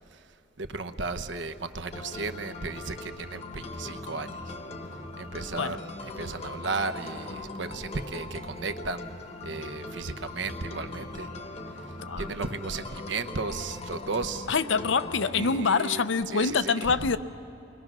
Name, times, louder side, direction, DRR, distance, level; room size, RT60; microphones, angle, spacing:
voice 1, 0.6-4.6 5.2-9.1 9.4-11.3 11.8-14.5 15.3-17.2, right 3 dB, 70° right, 10 dB, 0.9 m, -35 dB
sound 1, 1.9-15.6, left 2 dB, 35° left, 1.0 m, -40 dB
voice 2, 14.5-17.2, left 5 dB, 75° left, 12 dB, 0.6 m, -25 dB
28.5 x 21.0 x 6.0 m, 2.9 s
head